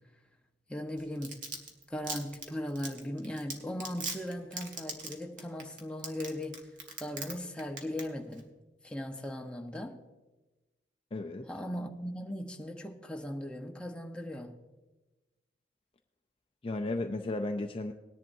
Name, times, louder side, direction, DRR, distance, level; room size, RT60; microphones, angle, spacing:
voice 1, 0.7-1.4 1.9-6.6 7.0-8.5 8.8-10.0 11.5-14.6, equal, 5° left, 0.8 m, -38 dB
Domestic sounds home sounds, 1.0-7.3 7.6-8.0 8.3-8.4, right 4 dB, 50° right, 1.5 m, -38 dB
voice 2, 11.1-11.5 16.6-17.9, left 2 dB, 30° left, 0.5 m, -34 dB
19.0 x 10.5 x 2.6 m
head